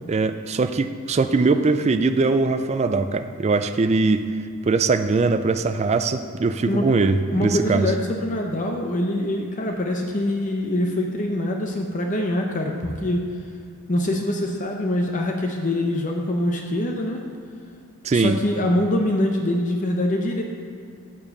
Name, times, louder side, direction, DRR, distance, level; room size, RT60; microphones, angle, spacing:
voice 1, 0.1-4.2 4.7-7.9 18.0-18.4, right 3 dB, 30° right, 9 dB, 0.3 m, -21 dB
voice 2, 6.6-7.0 7.3-13.3 13.9-17.2 18.1-20.4, left 1 dB, 35° left, 2 dB, 0.7 m, -24 dB
7.3 x 7.1 x 6.5 m, 2.4 s
head